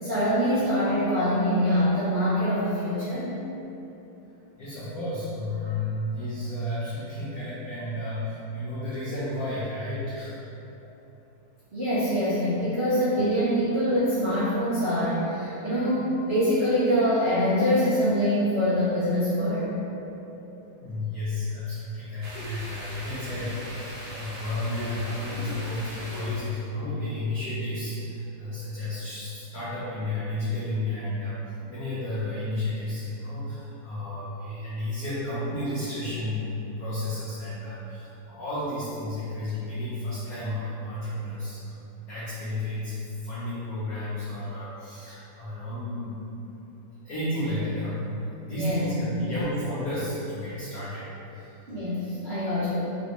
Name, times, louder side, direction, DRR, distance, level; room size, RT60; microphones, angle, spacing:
voice 1, 0.0-3.3 11.7-19.7 48.6-48.8 49.1-49.2 51.7-52.8, equal, 60° right, -16 dB, 0.7 m, -24 dB
voice 2, 4.6-10.4 20.8-31.4 31.7-41.8 42.1-42.9 43.2-46.2 47.0-51.0 51.3-51.5, left 1 dB, 80° left, -10 dB, 0.8 m, -32 dB
sound 1, 8.1-8.3 9.8-10.1 10.5-10.9 12.1-12.3 12.6-13.3 13.5-15.2 17.5-17.7 18.1-18.4 18.7-18.8 19.0-20.7 22.3-22.5 23.1-24.9 25.3-25.8 26.1-26.3 26.6-27.0, left 1 dB, 50° left, 0.4 m, -46 dB
sound 2, 22.2-26.5, right 1 dB, 80° right, 1.4 m, -40 dB
3.3 x 2.6 x 2.9 m, 3.0 s
omnidirectional pair, 2.3 m